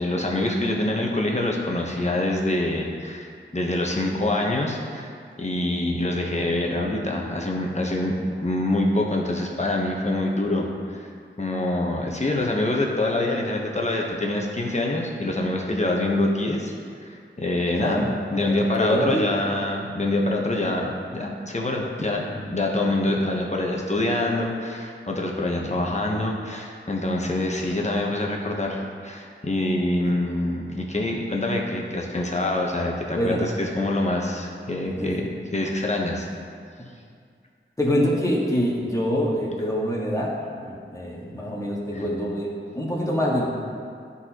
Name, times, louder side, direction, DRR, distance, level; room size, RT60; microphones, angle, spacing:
voice 1, 0.0-5.1 5.4-11.1 11.4-16.7 17.0-36.3 41.9-42.0, left 1 dB, 35° left, -1 dB, 1.0 m, -25 dB
voice 2, 18.4-19.3 33.1-33.4 35.0-35.1 37.8-42.5 42.7-43.5, equal, 15° left, -5 dB, 1.6 m, -25 dB
10.5 x 4.1 x 3.0 m, 2.2 s
cardioid pair, 40°, 20 cm